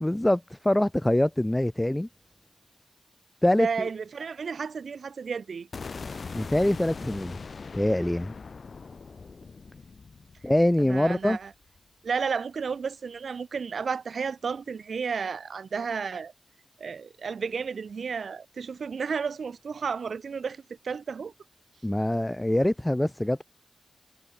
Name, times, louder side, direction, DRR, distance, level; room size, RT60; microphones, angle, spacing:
voice 1, 0.0-2.1 3.4-3.7 6.3-7.3 7.7-8.3 10.4-11.4 21.8-23.4, left 1 dB, 15° left, 0.6 m, -24 dB
voice 2, 3.6-5.7 10.8-11.5 12.0-16.3 16.8-21.3, right 5 dB, 80° right, 3.2 m, -32 dB
sound 1, 5.7-11.8, left 4 dB, 65° left, 4.3 m, -41 dB
cardioid pair, 65°, 0 cm